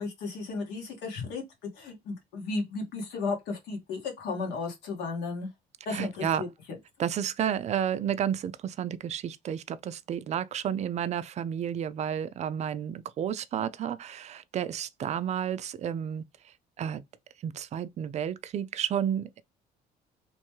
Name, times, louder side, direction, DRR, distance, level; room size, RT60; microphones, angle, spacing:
voice 1, 0.0-5.5 5.8-6.5, left 4 dB, 85° left, 1.4 m, -34 dB
voice 2, 5.9-6.4 7.0-17.0 17.4-19.4, right 9 dB, 40° right, 0.4 m, -31 dB
3.0 x 2.2 x 3.1 m
cardioid pair, 110°, 17 cm